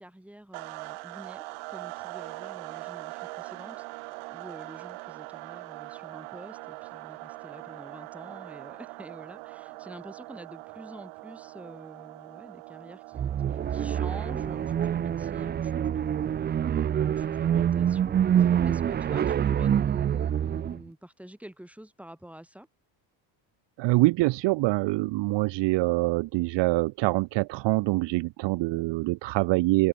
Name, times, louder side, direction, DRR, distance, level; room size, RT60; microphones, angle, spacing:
voice 1, 0.0-16.2 16.9-22.7, right 1 dB, 5° right, 3.9 m, -47 dB
sound 1, 0.5-15.3, right 26 dB, 85° right, 1.7 m, -42 dB
sound 2, 13.1-20.8, right 9 dB, 25° right, 0.3 m, -26 dB
voice 2, 23.8-29.9, right 21 dB, 65° right, 0.6 m, -25 dB
open air
cardioid pair, 110°, 48 cm